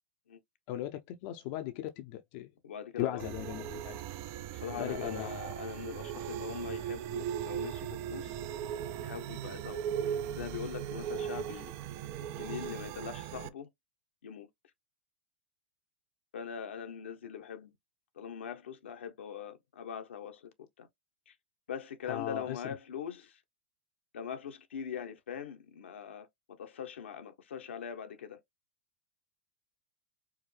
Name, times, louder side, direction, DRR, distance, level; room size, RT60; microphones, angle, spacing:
voice 1, 0.7-2.5 3.0-4.0 4.8-5.3 22.1-22.6, left 13 dB, 50° left, 0.6 m, -37 dB
voice 2, 2.6-3.2 4.5-8.4 9.0-9.8 10.3-11.7 12.4-13.7 14.2-14.5 16.3-17.7 18.2-20.5 20.8-20.9 21.3-21.4 21.7-23.4 24.1-28.4, left 7 dB, 85° left, 0.9 m, -42 dB
sound 1, 3.2-13.5, right 9 dB, 45° right, 0.4 m, -38 dB
4.8 x 2.1 x 3.2 m
hypercardioid pair, 110°, 6 cm